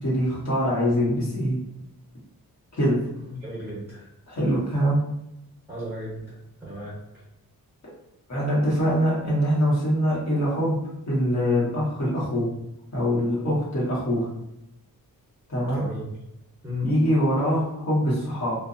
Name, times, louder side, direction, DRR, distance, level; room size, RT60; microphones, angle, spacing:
voice 1, 0.0-1.6 2.8-3.0 4.3-5.0 7.8-7.9 8.3-10.8 11.1-12.5 12.9-14.3 15.5-15.8 16.8-18.6, equal, 55° left, -7 dB, 1.4 m, -23 dB
voice 2, 3.2-4.0 5.7-6.1 6.6-6.9 15.6-16.0 16.6-16.9, left 1 dB, 5° right, -9 dB, 1.0 m, -34 dB
2.6 x 2.6 x 2.6 m, 0.85 s
wide cardioid pair, 120°, 35 cm